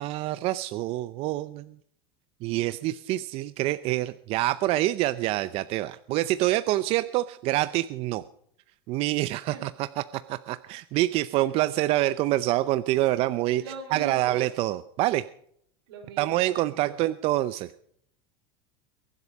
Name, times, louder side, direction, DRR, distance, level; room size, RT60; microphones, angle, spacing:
voice 1, 0.0-1.7 2.4-8.2 8.9-10.0 10.3-13.6 13.9-15.2 16.2-17.7, right 16 dB, 50° right, 14 dB, 0.6 m, -26 dB
voice 2, 13.6-14.5 15.9-17.0, right 4 dB, 85° right, 5 dB, 4.9 m, -41 dB
23.0 x 8.0 x 5.3 m, 0.67 s
supercardioid pair, 125°, 13 cm